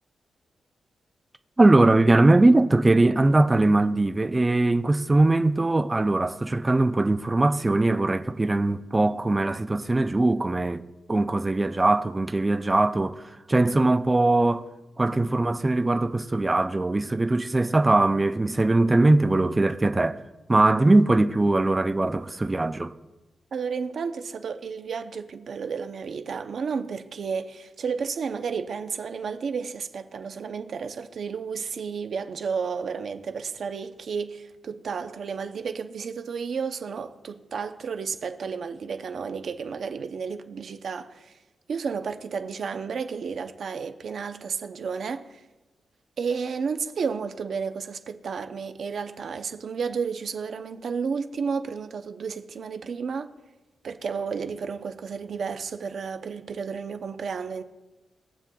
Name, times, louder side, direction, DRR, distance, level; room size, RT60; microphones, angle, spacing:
voice 1, 1.6-10.8 11.1-13.2 13.5-14.7 15.0-20.2 20.5-22.9, right 2 dB, 15° right, 0.4 m, -21 dB
voice 2, 23.5-41.4 41.7-45.4 46.2-53.3 53.8-57.6, right 5 dB, 55° right, 0.7 m, -32 dB
21.5 x 7.5 x 2.3 m
wide cardioid pair, 150°, 0 cm